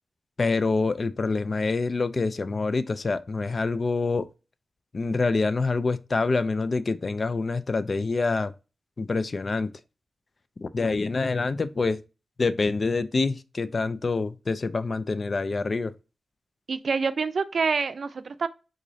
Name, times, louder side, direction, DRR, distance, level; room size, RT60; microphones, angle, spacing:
voice 1, 0.4-4.3 4.9-8.5 9.0-9.7 10.6-12.0 12.4-15.9, left 3 dB, 50° left, 0.3 m, -26 dB
voice 2, 16.7-18.5, right 5 dB, 70° right, 0.4 m, -26 dB
3.7 x 3.0 x 2.6 m
cardioid pair, 70°, 0 cm